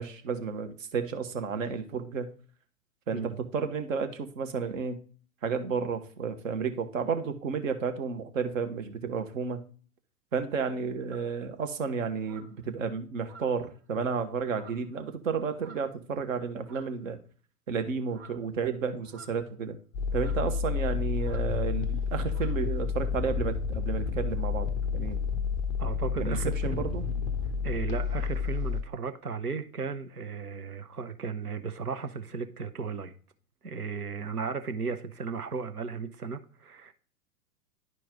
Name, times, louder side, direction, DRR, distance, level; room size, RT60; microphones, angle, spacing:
voice 1, 0.0-2.3 3.1-5.0 5.4-9.6 10.3-17.2 17.7-19.8 20.1-24.7 24.9-25.2 26.2-27.0, right 5 dB, 60° right, 1.3 m, -32 dB
sound 1, 11.1-11.3 12.2-12.6 13.2-13.8 14.5-14.9 15.5-16.0 16.6-17.0 18.1-18.4 19.0-19.6 20.1-20.5 21.2-21.5 21.8-22.0 22.3-22.6, right 4 dB, 30° right, 1.7 m, -52 dB
sound 2, 19.9-28.8, left 6 dB, 15° left, 0.3 m, -30 dB
voice 2, 25.8-26.8 27.6-33.1 33.6-36.9, right 5 dB, 90° right, 0.8 m, -35 dB
11.0 x 4.6 x 3.7 m
figure-of-eight pair, 100°, 44 cm